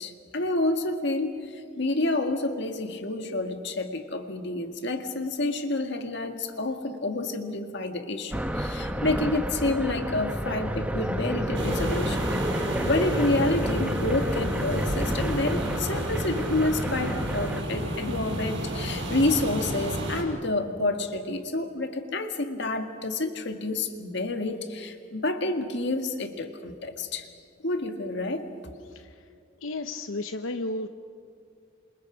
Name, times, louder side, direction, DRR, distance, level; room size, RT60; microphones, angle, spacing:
voice 1, 0.0-27.3 27.6-28.5, left 2 dB, 60° left, 5 dB, 1.9 m, -29 dB
sound 1, 8.3-17.6, equal, 5° right, 0.9 m, -30 dB
sound 2, 11.5-20.2, right 1 dB, 65° right, 5.6 m, -31 dB
voice 2, 29.6-30.9, left 2 dB, 90° left, 7 dB, 0.8 m, -33 dB
28.0 x 26.5 x 5.1 m, 2.3 s
head